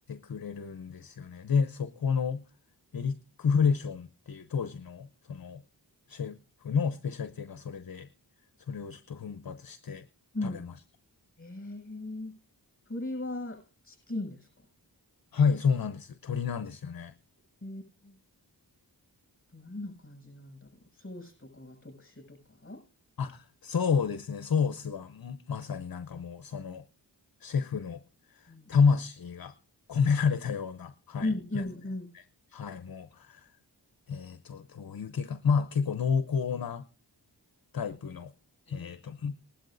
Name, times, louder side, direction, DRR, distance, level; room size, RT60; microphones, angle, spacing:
voice 1, 0.1-2.4 2.9-5.6 6.1-6.4 6.6-8.1 8.7-10.0 10.4-10.7 15.3-17.1 23.2-26.8 27.4-28.0 28.3-29.5 29.9-31.6 32.1-32.2 32.5-33.5 34.1-36.8 37.7-38.3 38.7-39.3, left 6 dB, 55° left, 12 dB, 0.7 m, -30 dB
voice 2, 11.4-12.3 12.9-14.5 17.6-18.2 19.5-20.7 20.9-22.8 28.5-28.7 31.2-32.1 38.7-39.0, left 2 dB, 30° left, 3 dB, 7.2 m, -37 dB
19.5 x 12.0 x 2.6 m, 0.32 s
cardioid pair, 40°, 43 cm